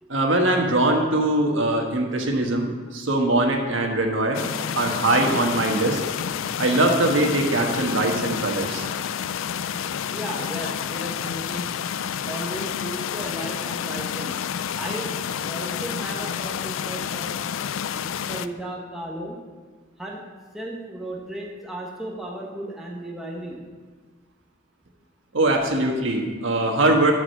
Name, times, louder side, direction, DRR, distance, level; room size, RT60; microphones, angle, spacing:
voice 1, 0.1-4.4 4.7-6.0 6.6-8.9 25.3-27.1, right 2 dB, 75° right, 2 dB, 1.4 m, -22 dB
sound 1, 4.3-18.5, left 8 dB, 90° left, 0.4 m, -29 dB
voice 2, 10.1-11.7 12.2-14.4 14.7-15.1 15.4-17.4 18.3-19.4 20.0-20.2 20.5-23.6, right 1 dB, ahead, -3 dB, 1.3 m, -35 dB
12.0 x 4.9 x 6.6 m, 1.5 s
head